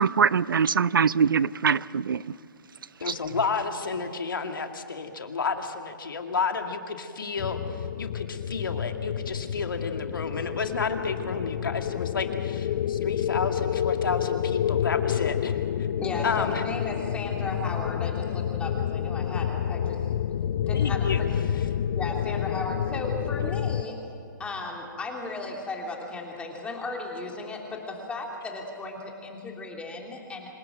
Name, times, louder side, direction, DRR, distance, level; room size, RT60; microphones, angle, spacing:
voice 1, 0.0-2.2, right 6 dB, 85° right, 21 dB, 0.5 m, -22 dB
voice 2, 3.0-15.6 16.2-16.6 20.7-21.7, left 5 dB, 85° left, 5 dB, 2.3 m, -31 dB
Windy Mystic Ambience, 7.4-23.8, left 9 dB, 50° left, 0.7 m, -29 dB
voice 3, 16.0-20.0 20.7-21.3 21.7-23.9 24.4-30.5, left 2 dB, 10° left, 0 dB, 3.1 m, -35 dB
26.5 x 17.0 x 7.5 m, 2.7 s
hypercardioid pair, 140°, 11 cm